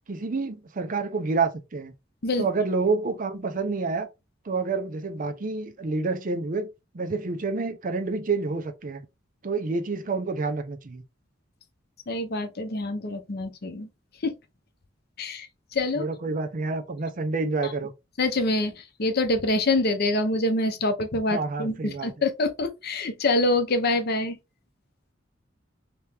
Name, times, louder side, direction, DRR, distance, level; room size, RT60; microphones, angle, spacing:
voice 1, 0.1-1.9 2.4-4.1 4.4-6.7 6.9-9.0 9.4-11.0 16.0-17.9 21.3-22.1, right 4 dB, 45° right, 0.6 m, -28 dB
voice 2, 12.1-13.9 14.2-14.3 15.2-15.5 15.7-16.0 18.2-24.4, left 2 dB, 55° left, 0.7 m, -25 dB
3.3 x 2.9 x 3.3 m
head